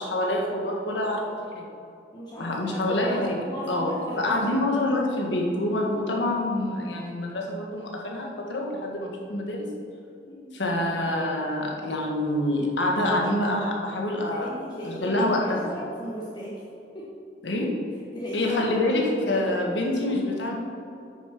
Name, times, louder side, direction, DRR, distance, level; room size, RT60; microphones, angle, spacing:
voice 1, 0.0-1.7 2.4-3.4 3.7-9.7 10.5-14.5 14.8-15.7 17.4-17.7 18.3-20.5, left 1 dB, 85° left, 0 dB, 1.6 m, -26 dB
voice 2, 2.1-4.7 5.8-6.1 10.2-10.5 14.3-16.6 16.9-17.1 18.1-19.4, equal, 25° left, -5 dB, 1.1 m, -37 dB
8.6 x 6.8 x 5.9 m, 2.6 s
head